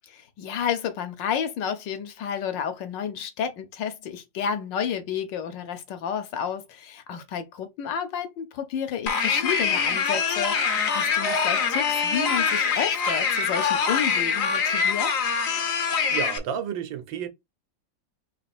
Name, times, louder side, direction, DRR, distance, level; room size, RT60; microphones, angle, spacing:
voice 1, 0.1-15.1, left 8 dB, 75° left, 1.5 m, -31 dB
sound 1, 9.1-16.4, left 6 dB, 55° left, 1.0 m, -24 dB
voice 2, 15.9-17.3, right 8 dB, 85° right, 1.5 m, -32 dB
3.7 x 3.2 x 4.2 m
omnidirectional pair, 2.0 m